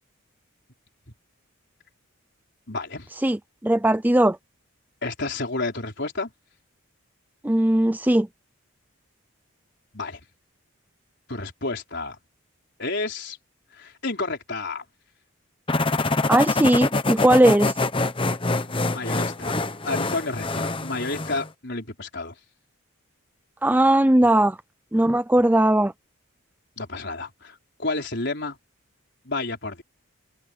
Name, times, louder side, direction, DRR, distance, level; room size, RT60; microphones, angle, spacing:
voice 1, 2.7-3.1 5.0-6.3 9.9-10.2 11.3-12.2 12.8-13.4 13.7-14.8 17.2-17.3 18.7-22.3 26.8-28.6 29.2-29.8, left 3 dB, 50° left, 4.7 m, -31 dB
voice 2, 3.6-4.4 7.4-8.3 16.3-17.7 23.6-24.6 24.9-25.9, right 1 dB, 10° right, 0.4 m, -18 dB
sound 1, 15.7-21.5, left 2 dB, 25° left, 0.9 m, -25 dB
head